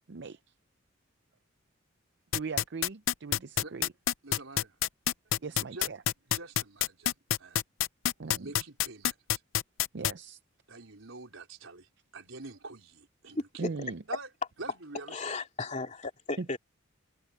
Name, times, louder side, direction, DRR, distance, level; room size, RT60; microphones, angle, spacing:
voice 1, 0.1-0.4 2.3-3.9 5.4-6.0 8.2-8.5 9.9-10.4 13.6-14.0 16.4-16.5, right 4 dB, 60° right, 0.6 m, -39 dB
sound 1, 2.3-10.1, left 11 dB, 80° left, 0.5 m, -27 dB
voice 2, 4.2-4.8 5.7-5.9 6.3-7.6 8.2-9.4 10.7-13.8 14.1-14.3 14.6-15.2, right 3 dB, 80° right, 4.1 m, -46 dB
voice 3, 15.1-16.6, left 3 dB, 35° left, 2.9 m, -35 dB
head